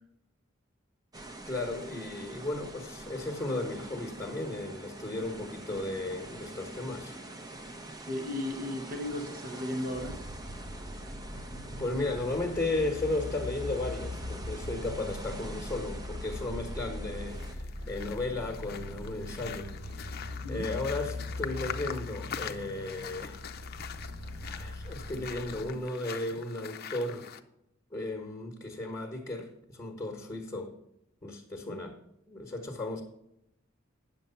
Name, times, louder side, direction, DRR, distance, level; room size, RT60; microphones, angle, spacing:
sound 1, 1.1-17.5, right 2 dB, 20° right, 0.9 m, -45 dB
voice 1, 1.5-7.1 11.3-11.4 11.8-20.1 20.5-23.4 24.4-27.3 27.9-30.7 31.2-32.0 32.3-33.0, left 2 dB, 15° left, 1.2 m, -35 dB
voice 2, 8.1-10.2 20.4-20.7 31.7-31.8, left 1 dB, 45° right, 1.0 m, -35 dB
sound 2, 9.9-25.7, left 1 dB, 85° right, 2.9 m, -41 dB
sound 3, 17.3-27.4, left 8 dB, 50° left, 0.6 m, -43 dB
9.1 x 6.8 x 5.6 m
head